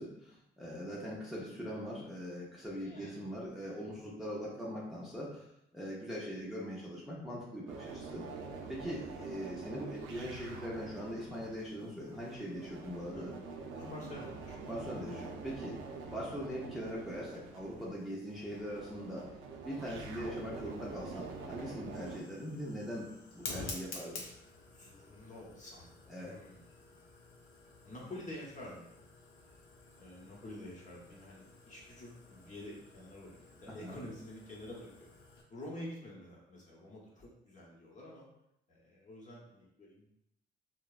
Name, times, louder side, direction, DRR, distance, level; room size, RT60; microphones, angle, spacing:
voice 1, 0.0-5.5 5.7-8.2 8.7-13.3 14.7-15.8 16.1-19.3 19.6-24.2 26.1-26.3 33.7-34.0, equal, ahead, -6 dB, 0.6 m, -41 dB
voice 2, 2.8-3.1 8.8-9.0 13.1-14.6 24.7-27.0 27.8-29.0 30.0-35.1 35.5-38.3 38.7-40.1, left 1 dB, 40° left, -4 dB, 0.9 m, -49 dB
sound 1, 7.7-22.2, right 4 dB, 80° right, 0.4 m, -46 dB
Fire, 19.7-35.4, left 3 dB, 90° left, 0.5 m, -51 dB
3.1 x 2.0 x 2.3 m, 0.79 s
cardioid pair, 90°, 20 cm